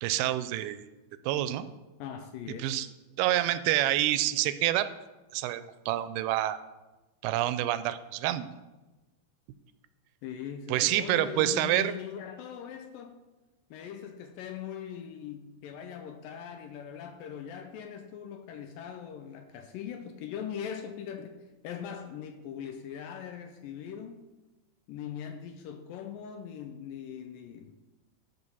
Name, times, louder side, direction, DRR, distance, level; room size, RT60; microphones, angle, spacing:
voice 1, 0.0-0.8 1.3-1.7 2.6-2.9 3.2-4.9 5.3-6.6 7.2-8.6 10.7-11.9, right 13 dB, 85° right, 2.4 m, -27 dB
voice 2, 2.0-2.8 10.2-13.2 13.7-24.2 24.9-27.8, left 8 dB, 80° left, 2.1 m, -41 dB
13.0 x 4.6 x 5.5 m
omnidirectional pair, 4.4 m